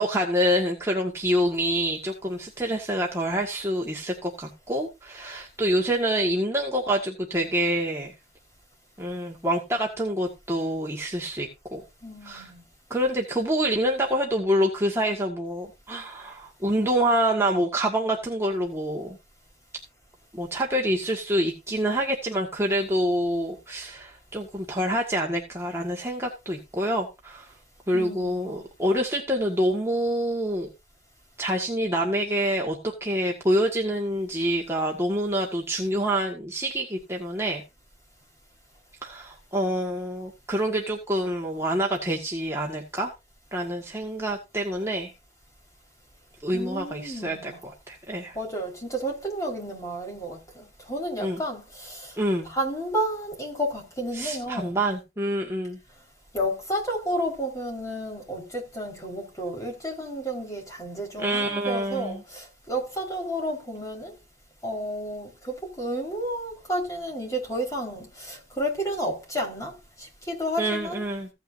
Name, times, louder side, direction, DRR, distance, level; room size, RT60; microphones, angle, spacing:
voice 1, 0.0-8.1 9.0-11.8 12.2-12.5 12.9-19.2 20.3-27.5 27.9-30.7 31.4-37.6 39.0-43.1 43.5-45.1 46.4-48.4 51.2-51.4 52.2-52.5 54.1-55.8 61.2-62.2 70.6-71.3, equal, 15° right, 1.6 m, -26 dB
voice 2, 12.0-12.6 27.9-28.6 46.5-47.6 48.3-52.2 52.4-54.8 56.3-64.1 64.6-71.0, equal, 20° left, 4.4 m, -31 dB
16.0 x 9.1 x 2.7 m
head